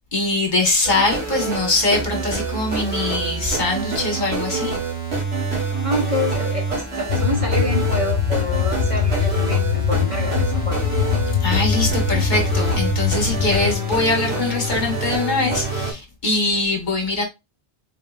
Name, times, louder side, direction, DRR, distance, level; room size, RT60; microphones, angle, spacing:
voice 1, 0.1-4.8 11.4-17.2, left 2 dB, 45° left, 1.3 m, -22 dB
sound 1, 0.8-15.9, right 3 dB, 85° right, 1.6 m, -26 dB
voice 2, 5.8-10.8, equal, 35° right, 0.9 m, -27 dB
sound 2, 7.1-13.8, left 9 dB, 85° left, 0.9 m, -22 dB
3.8 x 3.7 x 2.4 m
omnidirectional pair, 1.1 m